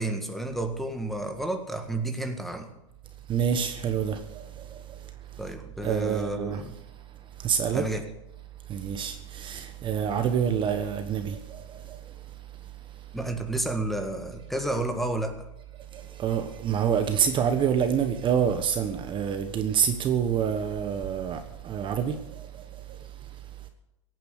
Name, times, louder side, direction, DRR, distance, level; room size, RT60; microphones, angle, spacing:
voice 1, 0.0-2.7 5.4-6.8 7.7-8.1 13.1-15.5, right 2 dB, ahead, 1.7 m, -31 dB
voice 2, 3.3-4.4 5.8-6.6 7.4-7.8 8.7-11.4 15.9-22.2, right 8 dB, 30° right, 1.3 m, -26 dB
16.5 x 9.2 x 6.7 m
hypercardioid pair, 120°, 17 cm